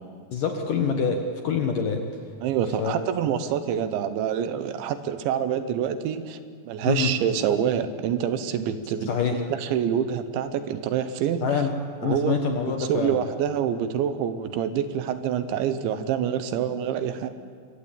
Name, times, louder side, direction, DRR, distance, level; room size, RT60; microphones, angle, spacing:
voice 1, 0.3-2.0 2.8-3.1 6.8-7.1 9.1-9.4 11.4-11.7 12.0-13.2, left 6 dB, 60° left, 5 dB, 2.3 m, -25 dB
voice 2, 2.4-6.4 6.7-11.5 12.0-12.4 12.7-17.3, right 9 dB, 75° right, 11 dB, 3.3 m, -26 dB
26.0 x 22.5 x 9.0 m, 2.1 s
omnidirectional pair, 5.6 m